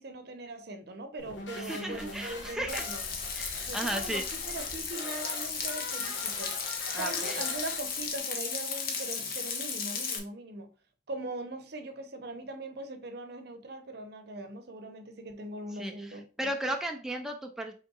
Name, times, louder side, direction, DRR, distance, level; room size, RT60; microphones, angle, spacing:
voice 1, 0.0-3.1 3.6-6.5 6.9-10.7 11.1-16.3, right 2 dB, 60° right, 0.8 m, -40 dB
sound 1, 1.2-8.2, left 3 dB, 85° left, 1.4 m, -42 dB
voice 2, 1.5-2.8 3.4-4.3 6.9-7.4 15.7-17.7, right 1 dB, 5° right, 0.4 m, -35 dB
Frying (food), 2.7-10.2, left 5 dB, 50° left, 0.9 m, -35 dB
5.4 x 3.6 x 2.3 m
head